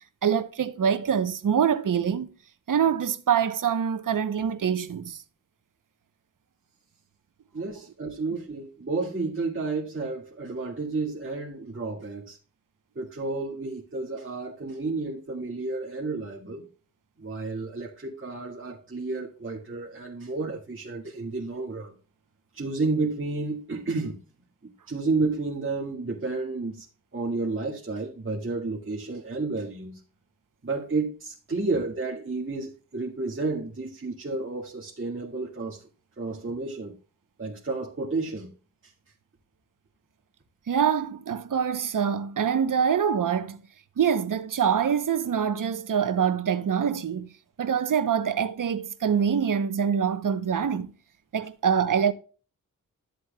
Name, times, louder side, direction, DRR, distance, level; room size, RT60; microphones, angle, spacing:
voice 1, 0.2-2.3 2.7-5.2 40.7-43.6 44.0-47.3 47.6-50.9 51.3-52.1, right 7 dB, 70° right, 0.9 m, -25 dB
voice 2, 7.5-12.4 13.0-16.7 17.2-21.9 22.5-24.2 24.6-26.9 27.1-30.0 30.6-35.9 36.2-36.9 37.4-38.5 38.8-38.9, right 3 dB, 35° right, 2.1 m, -31 dB
12.5 x 7.8 x 2.3 m
wide cardioid pair, 75°, 33 cm